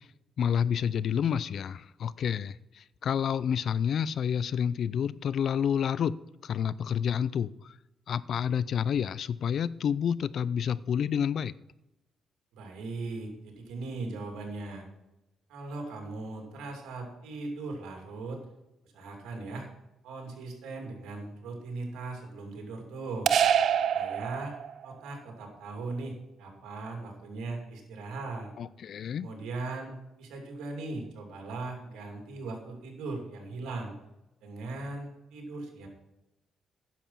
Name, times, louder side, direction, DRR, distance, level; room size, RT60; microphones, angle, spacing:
voice 1, 0.4-6.2 6.4-7.7 8.1-11.5 28.6-29.3, left 8 dB, 60° left, 0.4 m, -29 dB
voice 2, 12.5-14.9 15.5-18.4 18.9-19.7 20.0-23.3 23.9-24.5 24.8-28.5 29.2-33.9 34.4-35.9, right 3 dB, 85° right, 2.8 m, -39 dB
sound 1, 23.3-24.9, right 8 dB, 65° right, 0.4 m, -25 dB
10.0 x 7.2 x 5.6 m
cardioid pair, 90°, 0 cm